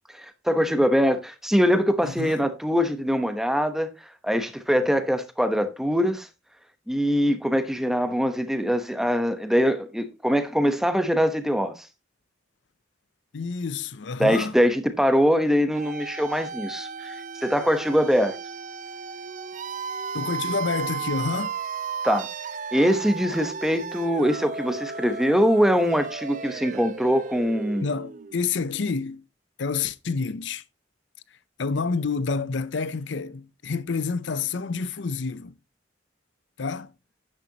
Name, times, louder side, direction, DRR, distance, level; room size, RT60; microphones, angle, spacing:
voice 1, 0.1-3.9 4.2-6.3 6.9-11.9 14.2-17.1 17.4-18.4 22.0-22.3 22.7-27.8, equal, ahead, 1.0 m, -23 dB
voice 2, 2.0-2.4 13.3-14.6 20.1-21.6 27.8-29.2 29.6-30.6 31.6-35.5 36.6-36.9, left 4 dB, 70° left, 0.6 m, -28 dB
sound 1, 15.7-28.5, right 5 dB, 40° right, 0.5 m, -34 dB
10.5 x 9.1 x 2.9 m
head